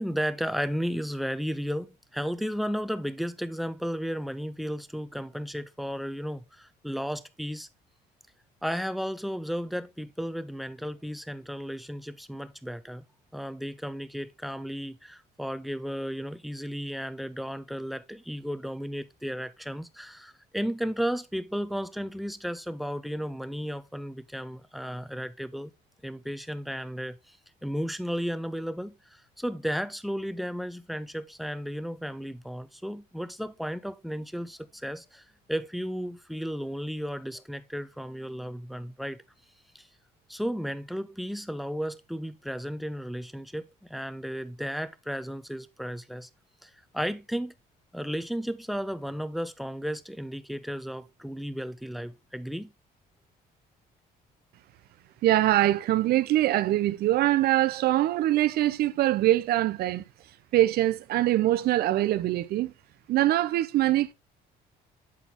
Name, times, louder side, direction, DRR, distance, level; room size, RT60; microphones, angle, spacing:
voice 1, 0.0-7.7 8.6-13.0 13.3-25.7 26.0-27.4 27.6-39.2 39.7-39.9 40.3-46.3 46.6-47.5 47.9-52.7, equal, ahead, 0.5 m, -34 dB
voice 2, 55.2-60.0 60.5-62.7 63.1-64.1, right 14 dB, 70° right, 0.5 m, -23 dB
7.5 x 4.1 x 3.6 m
cardioid pair, 110°, 17 cm